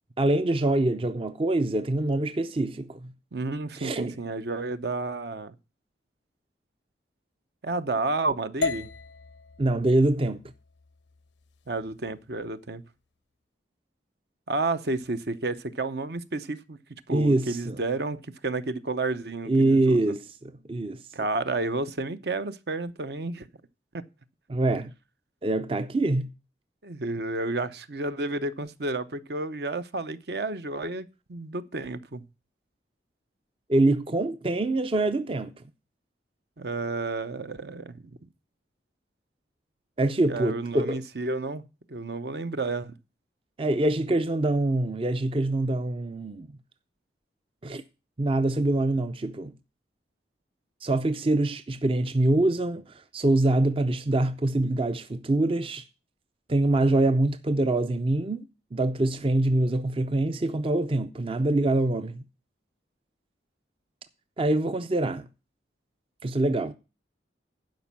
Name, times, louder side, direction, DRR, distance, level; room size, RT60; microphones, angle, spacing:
voice 1, 0.2-3.1 3.8-4.2 9.6-10.4 17.1-17.8 19.5-21.0 24.5-24.9 25.4-26.3 33.7-35.6 40.0-41.0 43.6-46.5 47.6-47.8 48.2-49.5 50.8-55.8 56.5-58.5 58.7-62.2 64.4-65.3 66.2-66.7, right 2 dB, 30° right, 0.5 m, -25 dB
voice 2, 3.3-5.5 7.6-8.9 11.7-12.8 14.5-16.8 17.1-20.0 21.1-23.5 23.9-24.0 26.8-32.2 36.6-38.2 40.3-41.6 41.9-42.9, right 3 dB, 60° right, 0.7 m, -31 dB
sound 1, 8.6-12.7, left 4 dB, 80° left, 0.6 m, -37 dB
11.5 x 5.2 x 7.0 m
head